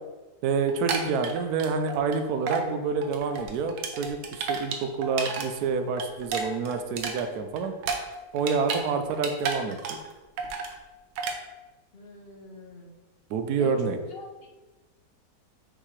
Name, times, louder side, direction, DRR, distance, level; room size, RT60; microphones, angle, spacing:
voice 1, 0.4-7.7 8.3-10.0 13.3-14.0, right 5 dB, 70° right, 7 dB, 1.1 m, -28 dB
sound 1, 0.7-2.2 2.5-2.7 3.0-5.5 5.8-8.8 9.1-10.1 10.4-10.7 11.2-11.4, right 5 dB, 90° right, 1.5 m, -32 dB
voice 2, 11.9-13.0 13.6-14.5, left 2 dB, 45° left, 1 dB, 0.9 m, -44 dB
6.3 x 5.7 x 3.2 m, 1.2 s
omnidirectional pair, 1.9 m